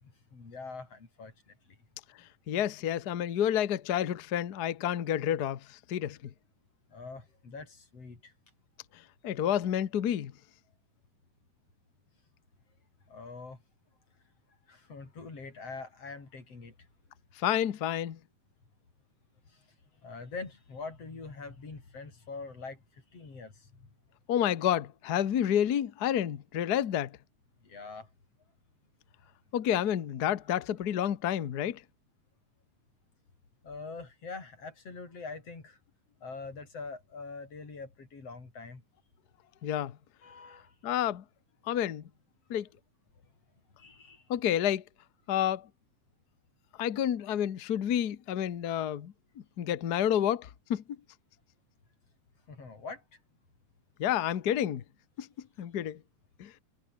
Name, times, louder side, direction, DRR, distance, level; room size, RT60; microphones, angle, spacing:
voice 1, 0.0-1.5 6.9-8.3 13.1-13.6 14.7-16.7 19.5-19.6 20.0-23.9 27.6-28.1 33.6-35.8 36.2-38.8 40.2-40.7 43.8-44.2 52.5-53.0, left 4 dB, 50° left, 6.3 m, -44 dB
voice 2, 2.5-6.2 9.2-10.3 17.4-18.2 24.3-27.2 29.5-31.8 39.6-39.9 40.8-41.2 41.7-42.0 42.5-42.7 44.3-44.8 45.3-45.7 46.8-49.1 49.6-50.8 54.0-54.8 55.2-55.3 55.6-56.0 56.4-56.5, left 10 dB, 75° left, 0.9 m, -29 dB
omnidirectional pair, 3.5 m